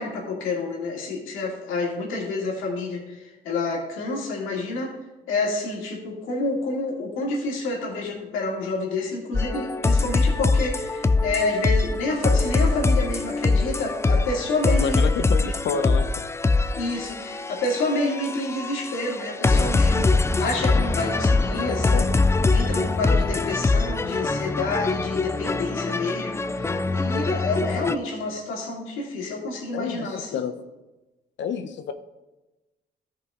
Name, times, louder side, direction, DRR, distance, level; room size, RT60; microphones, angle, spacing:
voice 1, 0.0-5.0 5.3-15.0 15.4-15.5 16.8-22.1 22.5-30.4, left 2 dB, 90° left, -1 dB, 2.4 m, -29 dB
sound 1, 9.3-28.0, left 3 dB, 15° left, 0.4 m, -23 dB
voice 2, 14.8-16.1 21.5-22.1 29.7-30.5 31.4-31.9, left 7 dB, 70° left, 9 dB, 0.7 m, -29 dB
13.5 x 5.6 x 3.7 m, 1.1 s
cardioid pair, 90°, 20 cm